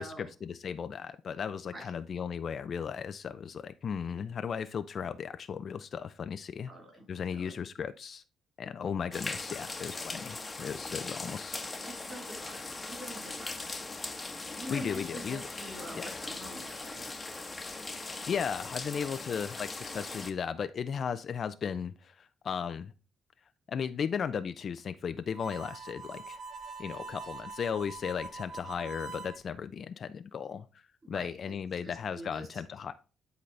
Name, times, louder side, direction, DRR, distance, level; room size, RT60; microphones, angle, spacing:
voice 1, 0.0-6.7 7.1-8.2 8.6-11.6 14.7-15.4 15.9-16.2 18.0-22.9 23.7-26.4 26.8-30.7 31.1-32.9, left 7 dB, 50° left, 11 dB, 0.5 m, -36 dB
voice 2, 6.7-7.1 7.3-7.6 10.9-11.0 11.8-13.9 14.6-17.1 31.0-31.6 31.8-32.5, right 1 dB, 25° right, 1 dB, 3.8 m, -46 dB
sound 1, 9.1-20.3, left 3 dB, 20° left, 1.1 m, -40 dB
Harmonica, 25.3-29.4, right 4 dB, 55° right, 1.3 m, -44 dB
10.0 x 4.0 x 3.2 m, 0.33 s
cardioid pair, 90°, 0 cm